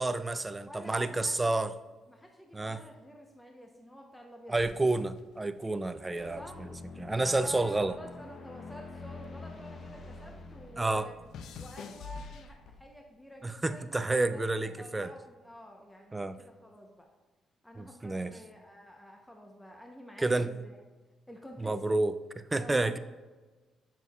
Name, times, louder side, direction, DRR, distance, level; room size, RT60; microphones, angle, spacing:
voice 1, 0.0-1.7 2.5-2.8 4.5-6.7 7.0-8.0 10.8-11.1 13.4-15.1 16.1-16.4 17.8-18.3 20.2-20.5 21.6-23.0, right 2 dB, 20° right, 12 dB, 0.4 m, -30 dB
voice 2, 0.6-1.6 2.1-4.8 6.3-6.6 7.2-11.1 11.5-17.1 17.6-20.8 21.3-21.8 22.6-23.0, equal, 5° left, 1 dB, 0.8 m, -49 dB
sound 1, 4.6-7.1 7.4-10.0 10.3-13.1 13.8-14.2, left 5 dB, 80° left, 0.5 m, -48 dB
sound 2, 6.1-12.8, left 3 dB, 50° left, 0.7 m, -47 dB
7.2 x 6.0 x 2.3 m, 1.2 s
cardioid pair, 90°, 0 cm